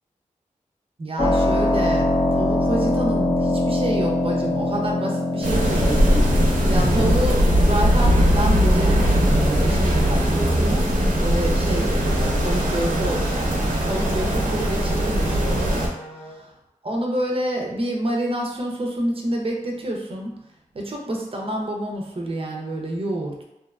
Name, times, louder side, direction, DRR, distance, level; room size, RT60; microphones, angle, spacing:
voice 1, 1.0-6.0 6.7-10.9 11.2-15.9 16.8-20.4 20.7-23.4, right 1 dB, 40° right, 0 dB, 0.5 m, -28 dB
Keyboard (musical), 1.2-13.7, left 1 dB, 30° left, 0.4 m, -25 dB
sound 1, 5.4-15.9, equal, 80° right, 0.6 m, -20 dB
Wind instrument woodwind instrument, 11.7-16.4, right 4 dB, 70° left, 0.7 m, -39 dB
2.7 x 2.2 x 2.4 m, 0.89 s
wide cardioid pair, 60°, 14 cm